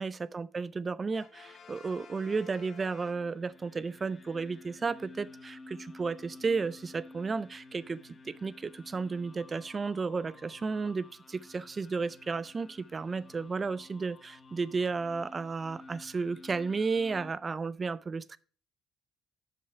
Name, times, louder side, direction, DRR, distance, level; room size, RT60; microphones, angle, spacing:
voice 1, 0.0-18.4, right 4 dB, 25° right, 0.3 m, -33 dB
Brass instrument, 1.1-3.8, left 6 dB, 45° left, 1.3 m, -52 dB
sound 1, 3.0-17.3, left 2 dB, 30° left, 0.6 m, -52 dB
6.6 x 5.6 x 4.8 m
cardioid pair, 130°, 0 cm